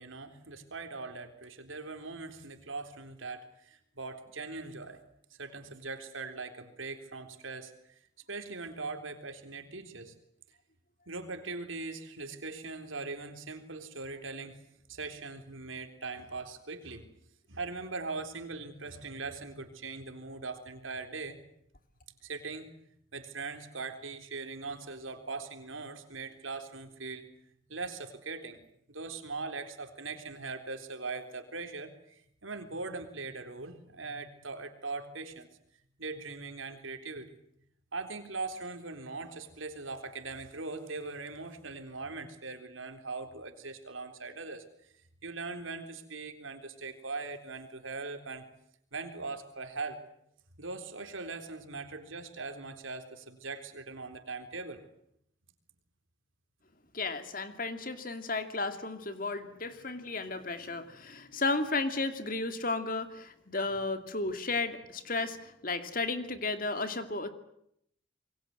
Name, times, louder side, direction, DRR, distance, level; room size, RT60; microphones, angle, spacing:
voice 1, 0.0-5.0 5.3-8.0 8.3-10.1 11.1-14.6 14.9-17.1 17.5-21.4 22.2-22.7 23.1-27.3 27.7-28.6 28.9-35.5 36.0-37.3 37.9-44.6 45.2-48.5 48.9-50.0 50.6-54.8, right 3 dB, 85° right, 7 dB, 3.9 m, -41 dB
voice 2, 56.9-67.3, left 3 dB, 45° left, 9 dB, 2.5 m, -33 dB
27.5 x 22.5 x 7.9 m, 0.73 s
head